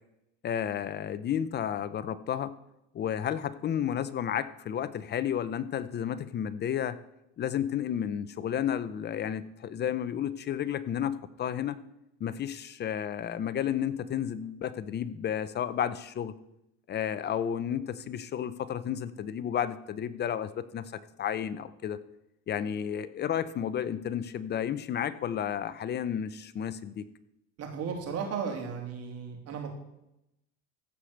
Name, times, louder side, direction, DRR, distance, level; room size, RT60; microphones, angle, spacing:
voice 1, 0.4-2.5 2.9-7.0 7.4-11.8 12.2-16.3 16.9-22.0 22.5-27.0, left 9 dB, 30° left, 15 dB, 0.6 m, -32 dB
voice 2, 27.6-29.7, right 6 dB, 45° right, 3 dB, 3.0 m, -35 dB
15.0 x 5.0 x 6.5 m, 0.84 s
supercardioid pair, 120°, 34 cm